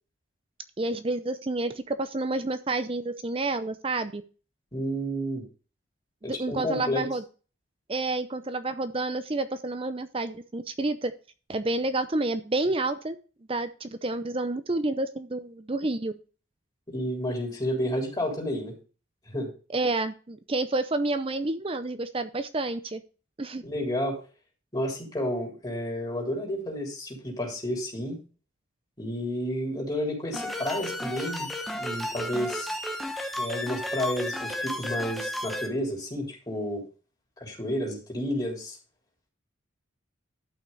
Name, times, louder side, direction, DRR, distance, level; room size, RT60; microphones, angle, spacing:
voice 1, 0.8-4.2 6.2-7.2 7.9-11.1 11.5-13.2 13.5-16.2 19.7-23.0 23.4-23.6, right 2 dB, 25° right, 11 dB, 0.6 m, -29 dB
voice 2, 4.7-5.4 6.2-7.0 16.9-18.7 19.3-19.5 23.6-24.2 24.7-28.2 29.0-31.5 31.8-32.8 33.4-36.8 37.4-38.8, equal, 20° left, -1 dB, 3.6 m, -31 dB
sound 1, 30.3-35.7, left 1 dB, ahead, 1.0 m, -33 dB
12.5 x 5.8 x 4.0 m, 0.36 s
head